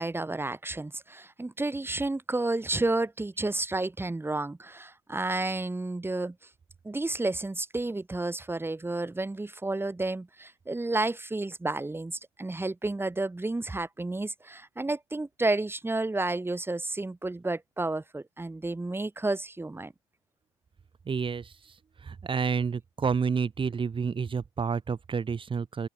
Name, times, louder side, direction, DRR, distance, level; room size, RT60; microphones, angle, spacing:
voice 1, 0.0-6.4 6.8-19.9, right 2 dB, 15° right, 7.7 m, -31 dB
voice 2, 21.1-21.7 22.0-25.9, right 6 dB, 30° right, 3.4 m, -29 dB
open air
figure-of-eight pair, 60°, 17 cm